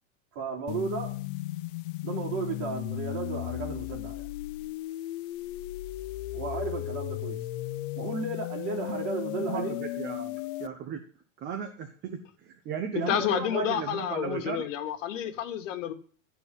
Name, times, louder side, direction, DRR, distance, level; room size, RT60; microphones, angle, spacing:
voice 1, 0.3-1.2 2.0-4.3 6.3-7.4 8.0-9.8 13.0-13.8, right 5 dB, 45° right, -1 dB, 3.7 m, -34 dB
sound 1, 0.7-10.7, left 16 dB, 45° left, 0.4 m, -35 dB
voice 2, 9.4-11.0 11.4-14.7, right 7 dB, 25° right, 6 dB, 1.0 m, -36 dB
voice 3, 12.9-15.9, left 10 dB, 75° left, 8 dB, 1.6 m, -30 dB
12.0 x 4.6 x 8.3 m, 0.44 s
supercardioid pair, 155°, 38 cm